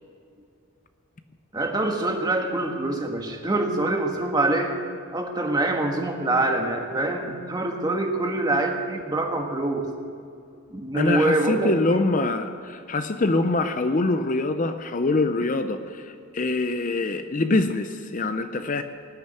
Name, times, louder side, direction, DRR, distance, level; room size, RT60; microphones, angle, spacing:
voice 1, 1.5-4.8 5.1-9.9 10.7-12.0, right 2 dB, 20° right, 2 dB, 1.4 m, -25 dB
voice 2, 10.9-18.8, left 2 dB, 35° left, 9 dB, 0.6 m, -24 dB
19.0 x 6.9 x 9.7 m, 2.5 s
head